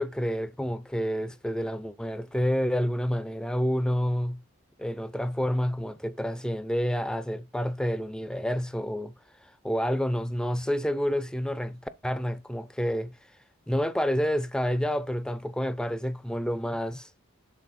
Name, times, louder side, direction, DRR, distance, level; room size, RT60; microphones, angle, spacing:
voice 1, 0.0-4.4 4.8-9.1 9.4-13.2 13.7-17.1, equal, 5° left, 0.4 m, -29 dB
8.2 x 3.8 x 4.1 m
head